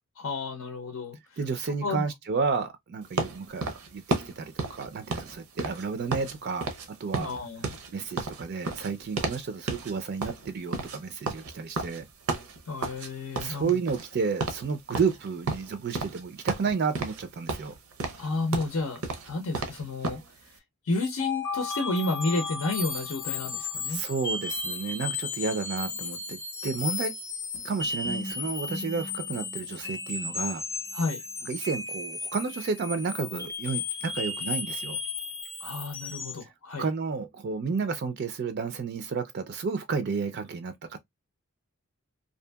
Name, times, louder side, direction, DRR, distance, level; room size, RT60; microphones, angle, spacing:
voice 1, 0.2-2.0 7.2-7.8 12.7-13.8 18.2-20.6 20.8-24.0 30.9-31.2 35.6-36.9, left 3 dB, 80° left, 0.6 m, -31 dB
voice 2, 1.4-7.3 7.9-12.0 13.4-17.8 23.9-27.1 27.6-30.6 31.4-35.0 36.4-36.5 36.8-41.0, right 5 dB, 50° right, 0.4 m, -31 dB
sound 1, 3.2-6.3 6.6-6.9 7.1-9.4 9.7-9.9 10.2-13.1 13.3-14.1 14.4-14.6 14.9-16.2 16.5-17.2 17.5-20.3, right 3 dB, 90° right, 0.7 m, -32 dB
sound 2, 20.9-36.4, left 4 dB, 10° left, 0.5 m, -34 dB
2.7 x 2.5 x 2.2 m
head